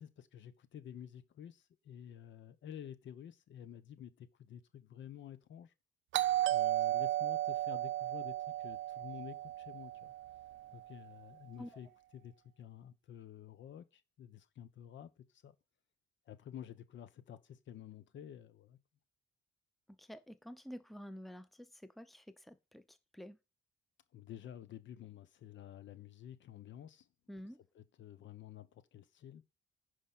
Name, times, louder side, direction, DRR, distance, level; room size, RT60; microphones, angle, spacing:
voice 1, 0.0-5.7 6.4-10.1 10.7-15.5 16.3-18.8 24.1-27.1 27.7-29.4, left 10 dB, 70° left, 1.1 m, -51 dB
Doorbell, 6.1-10.7, right 14 dB, 75° right, 0.6 m, -34 dB
voice 2, 20.0-23.4 27.3-27.6, equal, ahead, 0.8 m, -50 dB
10.0 x 5.0 x 5.7 m
cardioid pair, 90°, 20 cm